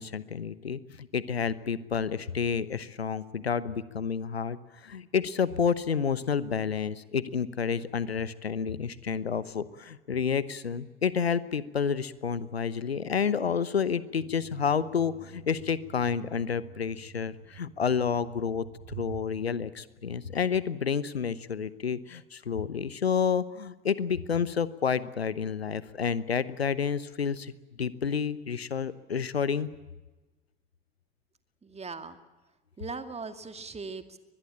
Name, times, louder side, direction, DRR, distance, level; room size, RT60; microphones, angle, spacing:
voice 1, 0.0-27.5 27.8-29.7, left 6 dB, 85° left, 17 dB, 1.0 m, -30 dB
sound 1, 14.2-19.2, right 9 dB, 55° right, 2.1 m, -48 dB
voice 2, 31.6-32.2 32.8-34.2, right 4 dB, 20° right, 9 dB, 2.4 m, -39 dB
23.5 x 21.0 x 8.8 m, 1.2 s
figure-of-eight pair, 65°, 30 cm